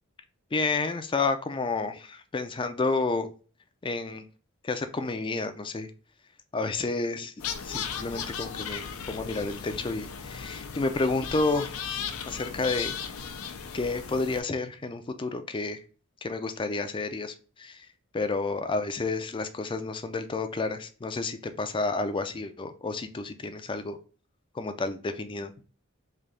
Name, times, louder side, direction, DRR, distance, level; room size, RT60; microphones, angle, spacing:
voice 1, 0.5-3.3 3.8-4.2 4.6-5.9 6.5-7.3 7.6-11.8 12.3-13.0 13.7-15.8 16.2-17.9 18.1-24.0 24.5-25.5, left 3 dB, 25° left, 9 dB, 0.4 m, -30 dB
sound 1, 7.4-14.4, left 7 dB, 85° left, 0.5 m, -36 dB
3.3 x 2.7 x 3.8 m, 0.37 s
head